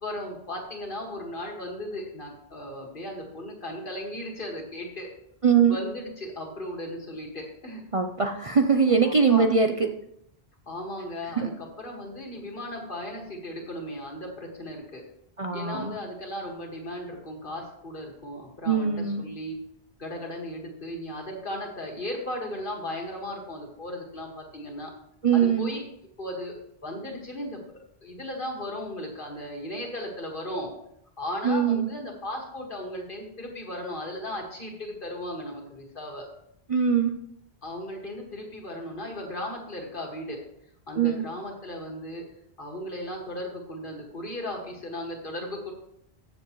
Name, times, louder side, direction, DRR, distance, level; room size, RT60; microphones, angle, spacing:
voice 1, 0.0-5.1 5.7-7.8 9.0-9.5 10.7-15.0 15.5-18.9 19.2-19.6 20.0-24.9 25.3-25.8 26.2-26.5 26.8-27.6 28.0-30.7 31.2-36.3 37.6-40.4 40.9-42.2 42.6-45.7, left 1 dB, 55° left, 0 dB, 2.1 m, -36 dB
voice 2, 5.4-5.8 7.9-9.7 11.4-11.5 15.4-16.0 18.7-19.2 25.2-25.7 31.4-31.9 36.7-37.1 41.0-41.2, right 6 dB, 40° right, 5 dB, 0.6 m, -22 dB
14.5 x 7.1 x 3.1 m, 0.75 s
omnidirectional pair, 1.0 m